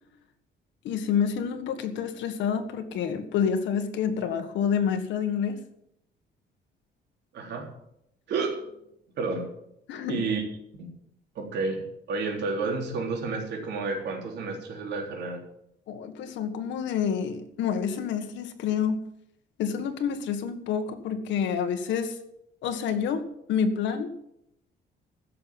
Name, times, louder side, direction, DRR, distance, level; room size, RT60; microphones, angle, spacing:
voice 1, 0.8-5.6 9.9-10.2 15.9-19.0 19.6-22.2 22.6-24.1, left 7 dB, 85° left, 7 dB, 1.7 m, -28 dB
voice 2, 7.3-7.7 8.3-8.6 9.2-9.5 10.1-10.4 10.8-10.9 11.4-11.8 12.1-15.4, right 4 dB, 70° right, 0 dB, 3.7 m, -30 dB
15.5 x 6.9 x 7.3 m, 0.78 s
cardioid pair, 155°, 18 cm